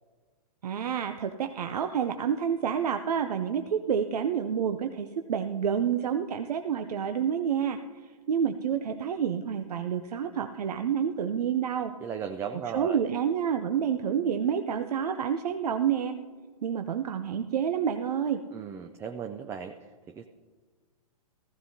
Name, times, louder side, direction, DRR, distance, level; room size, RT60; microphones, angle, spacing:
voice 1, 0.6-12.0 12.7-16.1 16.6-18.4, right 8 dB, 80° right, 8 dB, 0.6 m, -29 dB
voice 2, 12.0-13.0 18.5-19.8 20.1-20.3, right 7 dB, 15° right, 6 dB, 0.3 m, -36 dB
15.5 x 14.5 x 2.7 m, 1.5 s
hypercardioid pair, 130°, 20 cm